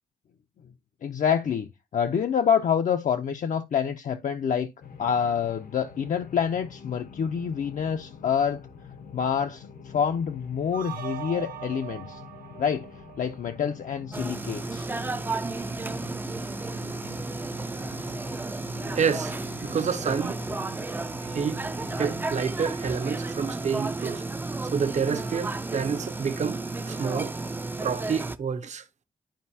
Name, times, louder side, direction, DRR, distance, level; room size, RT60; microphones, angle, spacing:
voice 1, 1.0-4.7 5.0-8.6 9.1-12.2 12.6-12.9 13.2-14.9, left 7 dB, 65° left, 0.6 m, -27 dB
sound 1, 4.8-22.4, left 6 dB, 85° left, 1.0 m, -46 dB
sound 2, 10.7-13.9, right 12 dB, 85° right, 0.9 m, -40 dB
sound 3, 14.1-28.4, right 3 dB, 15° right, 0.4 m, -33 dB
voice 2, 18.9-20.4 21.2-21.6 22.0-24.2 24.6-26.6 26.9-27.3 27.8-28.8, right 6 dB, 55° right, 0.7 m, -28 dB
11.5 x 4.9 x 2.7 m
wide cardioid pair, 175°, 15 cm